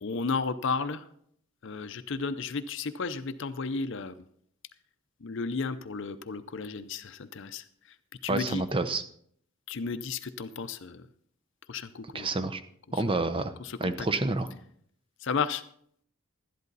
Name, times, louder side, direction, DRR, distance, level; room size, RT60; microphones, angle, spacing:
voice 1, 0.0-1.0 1.6-4.1 5.2-7.6 8.2-8.6 9.7-11.0 11.7-12.3 13.6-14.1 15.2-15.6, left 4 dB, 55° left, 11 dB, 0.6 m, -33 dB
voice 2, 8.3-9.0 12.1-12.6 12.9-13.5 13.8-14.5, right 2 dB, 25° right, 11 dB, 0.7 m, -28 dB
12.5 x 11.0 x 4.0 m, 0.66 s
head